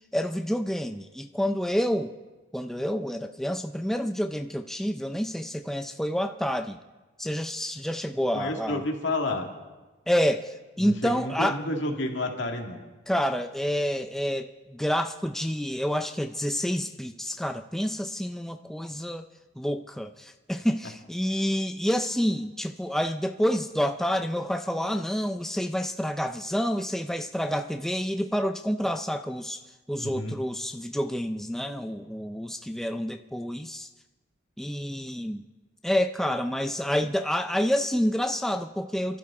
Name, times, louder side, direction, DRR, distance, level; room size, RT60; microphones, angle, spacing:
voice 1, 0.1-2.1 2.5-6.8 7.2-8.8 10.1-11.6 13.1-19.3 19.6-29.6 29.9-33.9 34.6-35.4 35.8-39.2, equal, ahead, 6 dB, 0.4 m, -28 dB
voice 2, 8.3-9.5 10.8-12.9 30.0-30.4, left 2 dB, 75° left, 2 dB, 1.9 m, -30 dB
25.5 x 12.0 x 3.7 m, 1.2 s
head